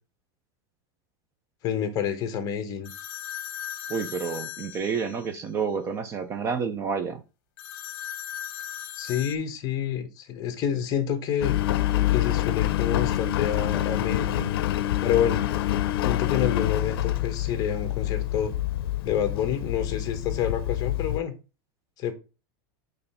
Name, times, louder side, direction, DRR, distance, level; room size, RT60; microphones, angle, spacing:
voice 1, 1.6-2.9 9.0-11.5 12.1-14.5 15.0-15.4 16.0-18.5 19.0-21.3 22.0-22.1, left 9 dB, 30° left, 1.2 m, -28 dB
sound 1, 2.8-5.4 7.6-9.4, left 11 dB, 55° left, 1.1 m, -37 dB
voice 2, 3.9-7.2, right 5 dB, 25° right, 0.6 m, -29 dB
Engine, 11.4-21.2, left 13 dB, 80° left, 0.6 m, -26 dB
6.7 x 3.3 x 5.5 m
supercardioid pair, 160°, 12 cm